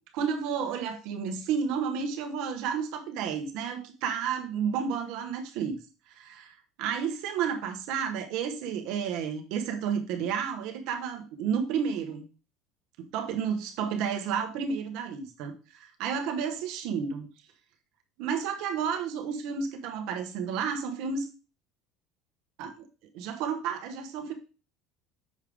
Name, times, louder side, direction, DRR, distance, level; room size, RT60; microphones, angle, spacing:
voice 1, 0.1-5.8 6.2-12.2 13.0-17.3 18.2-21.3 22.6-22.9 23.1-24.3, right 7 dB, 65° right, 1.1 m, -31 dB
6.5 x 4.8 x 3.5 m
hypercardioid pair, 75°, 0 cm